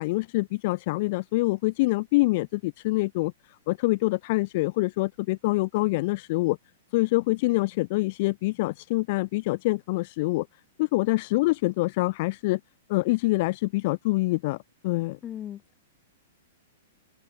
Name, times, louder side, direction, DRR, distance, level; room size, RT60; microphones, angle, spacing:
voice 1, 0.0-3.3 3.7-6.6 6.9-10.5 10.8-12.6 12.9-14.6 14.8-15.2, left 22 dB, 45° left, 0.8 m, -25 dB
voice 2, 15.2-15.8, left 10 dB, 20° left, 5.4 m, -38 dB
hypercardioid pair, 150°, 0 cm